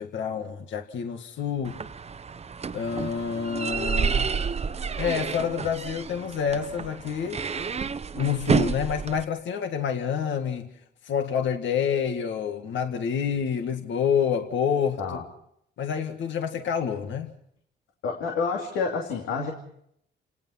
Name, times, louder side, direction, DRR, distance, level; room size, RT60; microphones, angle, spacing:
voice 1, 0.0-1.8 2.7-4.3 5.0-7.4 8.1-10.7 11.0-15.0 15.8-17.3, left 7 dB, 70° left, 1.9 m, -28 dB
sound 1, 1.6-9.2, right 5 dB, 30° right, 0.9 m, -29 dB
voice 2, 18.0-19.5, left 4 dB, 90° left, 2.8 m, -28 dB
29.5 x 18.5 x 5.8 m
cardioid pair, 90°, 20 cm